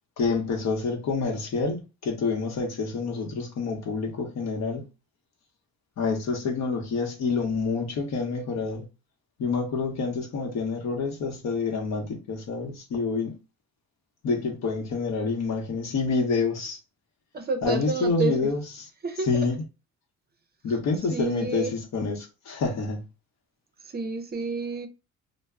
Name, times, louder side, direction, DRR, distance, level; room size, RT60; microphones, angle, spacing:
voice 1, 0.2-4.9 6.0-8.8 9.4-13.4 14.2-16.8 17.6-18.6 19.3-19.6 20.6-23.0, left 4 dB, 60° left, 0.9 m, -27 dB
voice 2, 17.3-18.5 19.0-19.5 20.7-20.8 21.1-21.8 23.8-24.9, right 4 dB, 35° right, 0.5 m, -30 dB
2.2 x 2.0 x 3.4 m
cardioid pair, 90°, 30 cm